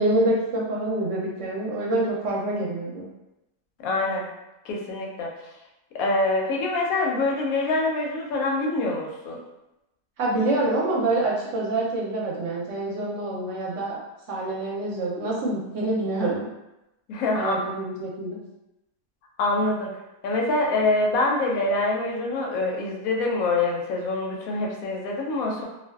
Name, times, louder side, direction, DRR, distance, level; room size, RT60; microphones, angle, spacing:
voice 1, 0.0-3.0 10.2-14.0 14.3-16.5 17.4-18.4, right 2 dB, 70° right, -3 dB, 0.8 m, -26 dB
voice 2, 3.8-4.3 4.6-5.3 5.9-9.4 17.1-17.6 19.4-19.9 20.2-25.7, left 2 dB, 85° left, -1 dB, 1.0 m, -25 dB
2.5 x 2.2 x 2.2 m, 0.93 s
omnidirectional pair, 1.4 m